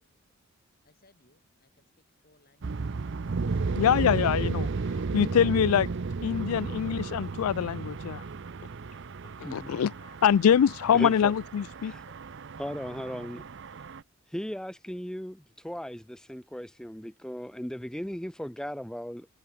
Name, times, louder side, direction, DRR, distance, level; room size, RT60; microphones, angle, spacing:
voice 1, 0.8-2.9, left 2 dB, 40° left, 7.6 m, -65 dB
sound 1, 2.6-14.0, right 4 dB, 55° right, 0.5 m, -34 dB
voice 2, 3.8-4.7 5.1-5.9 6.2-8.2 9.4-9.9 10.2-11.9, left 8 dB, 80° left, 0.3 m, -24 dB
voice 3, 10.9-11.4 11.8-12.0 12.6-13.4 14.3-19.3, equal, 5° left, 0.6 m, -37 dB
head